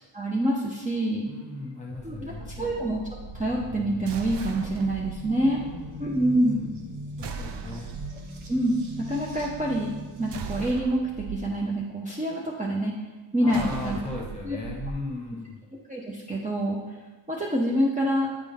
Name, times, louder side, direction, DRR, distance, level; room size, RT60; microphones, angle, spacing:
voice 1, 0.1-1.3 2.0-2.3 2.6-3.0 3.3-5.6 6.0-6.7 8.5-8.8 9.1-9.9 10.2-12.9 13.3-14.0 14.4-14.6 15.9-16.8 17.3-18.3, right 1 dB, 15° right, -4 dB, 0.7 m, -26 dB
voice 2, 1.3-2.7 5.6-6.7 7.2-8.0 13.4-15.6, left 2 dB, 15° left, -2 dB, 1.5 m, -37 dB
sound 1, 1.9-10.6, equal, 80° right, 1.0 m, -41 dB
sound 2, 4.1-5.2 7.2-8.2 10.3-11.4 13.5-15.0, right 5 dB, 60° right, 0.6 m, -37 dB
8.4 x 3.8 x 3.5 m, 1.2 s
wide cardioid pair, 80°, 47 cm